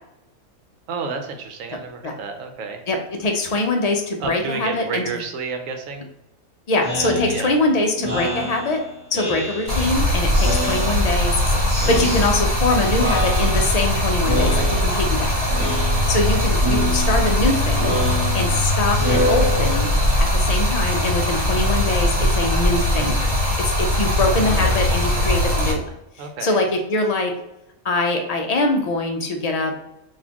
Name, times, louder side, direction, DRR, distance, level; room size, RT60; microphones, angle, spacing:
voice 1, 0.9-2.8 4.2-6.1 7.3-7.5 24.4-25.3 26.2-26.6, right 5 dB, 85° right, 5 dB, 1.0 m, -30 dB
voice 2, 2.9-5.0 6.7-8.8 9.1-11.6 11.9-15.3 16.1-18.0 18.3-19.9 20.3-23.3 23.6-25.9 26.2-27.3 27.8-29.7, left 2 dB, 65° left, 3 dB, 0.4 m, -23 dB
Speech synthesizer, 6.8-10.0 10.3-11.3 11.7-12.7 13.0-13.9 14.2-15.1 15.5-16.3 16.6-20.1, equal, 10° right, 1.4 m, -27 dB
Stream, 9.7-25.7, left 1 dB, 55° right, 1.7 m, -20 dB
4.1 x 2.6 x 2.8 m, 0.89 s
omnidirectional pair, 1.3 m